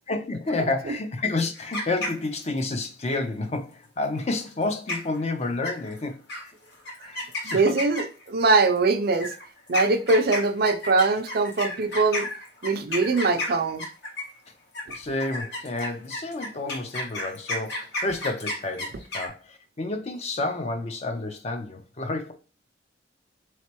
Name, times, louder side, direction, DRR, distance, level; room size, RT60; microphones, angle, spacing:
voice 1, 0.1-6.5 7.0-7.7 14.9-22.3, left 2 dB, 35° left, 0.5 m, -30 dB
sound 1, 1.5-2.6 4.5-4.6 4.9-5.2 5.6-6.0 6.3-6.4 6.9-8.3 9.1-14.4 14.7-19.3, left 1 dB, 60° left, 1.5 m, -32 dB
voice 2, 7.4-9.3 9.7-12.3 12.6-13.8, right 3 dB, 55° right, 0.5 m, -22 dB
4.0 x 3.2 x 2.9 m
head